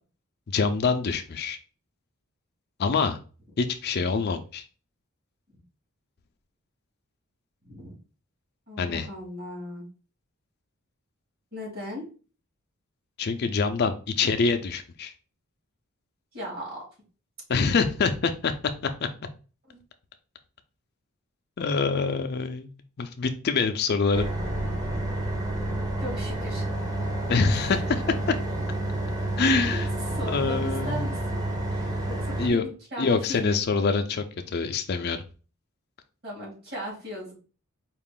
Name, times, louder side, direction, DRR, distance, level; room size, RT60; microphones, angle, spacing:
voice 1, 0.5-1.6 2.8-3.2 3.6-4.6 8.8-9.1 13.2-15.1 17.5-18.5 21.6-22.7 23.0-24.3 27.3-28.0 29.4-29.9 30.3-31.1 32.4-32.7 33.0-35.2, left 4 dB, 50° left, 7 dB, 0.4 m, -25 dB
voice 2, 8.7-9.8 11.5-12.0 16.3-16.8 19.7-19.8 26.0-26.6 27.5-27.7 29.7-29.8 30.1-33.6 36.2-37.3, equal, 50° right, -3 dB, 2.4 m, -38 dB
sound 1, 24.1-32.5, right 1 dB, 15° right, 0.8 m, -29 dB
4.8 x 2.4 x 3.6 m, 0.36 s
head